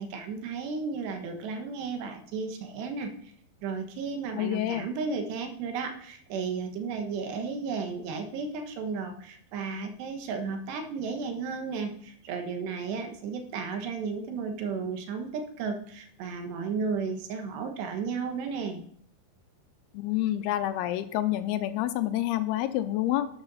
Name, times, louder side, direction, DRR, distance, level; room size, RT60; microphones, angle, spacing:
voice 1, 0.0-3.1 3.6-18.8, right 5 dB, 85° right, 5 dB, 3.5 m, -34 dB
voice 2, 4.4-4.9 19.9-23.3, left 13 dB, 85° left, 10 dB, 2.6 m, -28 dB
12.5 x 9.9 x 4.2 m, 0.63 s
omnidirectional pair, 4.8 m